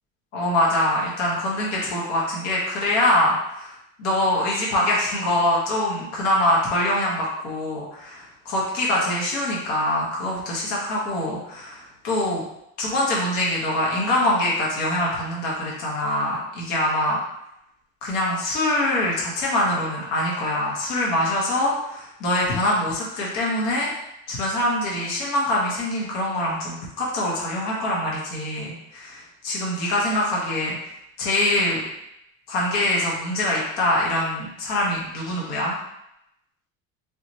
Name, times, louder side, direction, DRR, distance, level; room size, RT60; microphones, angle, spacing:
voice 1, 0.3-12.4 12.8-17.2 18.0-23.9 24.3-30.7 31.2-31.8 32.5-35.7, left 1 dB, 85° left, -4 dB, 1.2 m, -24 dB
3.9 x 2.8 x 3.1 m, 0.82 s
cardioid pair, 175°, 33 cm